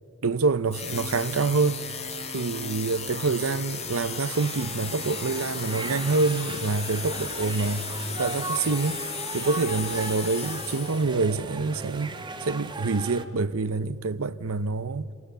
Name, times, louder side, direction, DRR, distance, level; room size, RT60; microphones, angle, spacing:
voice 1, 0.2-1.8 2.3-9.0 9.3-15.1, right 4 dB, 75° right, 0.8 m, -26 dB
sound 1, 0.7-11.3, left 6 dB, 30° left, 1.8 m, -35 dB
sound 2, 2.8-11.7, right 2 dB, 55° right, 2.0 m, -48 dB
sound 3, 3.6-13.2, right 3 dB, 20° right, 1.6 m, -38 dB
28.0 x 26.5 x 6.8 m
head